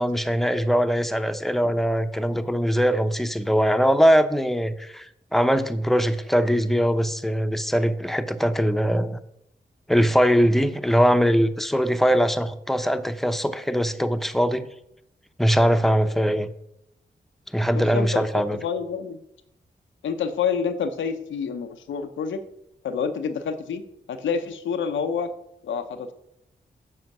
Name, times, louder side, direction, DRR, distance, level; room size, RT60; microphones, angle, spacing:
voice 1, 0.0-5.1 5.3-9.2 9.9-14.7 15.4-16.5 17.5-18.6, equal, ahead, 10 dB, 0.8 m, -21 dB
voice 2, 17.7-19.2 20.0-22.4 22.8-23.8 24.1-25.3 25.6-26.1, left 6 dB, 90° left, 8 dB, 0.7 m, -28 dB
7.8 x 5.1 x 5.9 m, 0.81 s
supercardioid pair, 40°, 19 cm